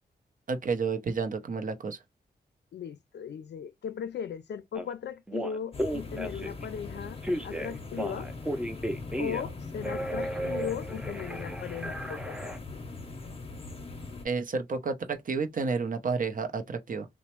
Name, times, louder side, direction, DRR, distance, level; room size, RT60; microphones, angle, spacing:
voice 1, 0.5-2.0 14.2-17.1, right 4 dB, 50° right, 0.6 m, -30 dB
voice 2, 2.7-8.3 9.2-12.8, left 8 dB, 75° left, 0.4 m, -38 dB
Telephone, 4.7-4.9 5.3-6.6 7.2-9.5 9.8-12.6, right 1 dB, 5° right, 0.5 m, -34 dB
sound 1, 5.7-14.3, left 3 dB, 30° left, 0.7 m, -41 dB
3.0 x 2.0 x 3.0 m
cardioid pair, 85°, 18 cm